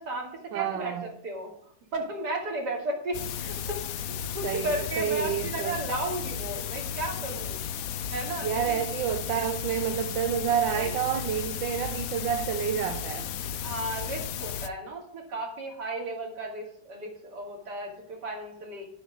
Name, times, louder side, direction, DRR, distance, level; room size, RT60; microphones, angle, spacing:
voice 1, 0.0-1.5 1.9-7.6 8.1-8.8 10.8-10.9 13.6-18.9, right 2 dB, 60° right, 0 dB, 3.3 m, -34 dB
voice 2, 0.5-1.1 4.4-5.8 8.4-13.3, right 9 dB, 80° right, 8 dB, 1.5 m, -29 dB
sound 1, 3.1-14.7, left 8 dB, 65° left, 0.9 m, -34 dB
10.0 x 8.0 x 6.3 m, 0.66 s
omnidirectional pair, 2.0 m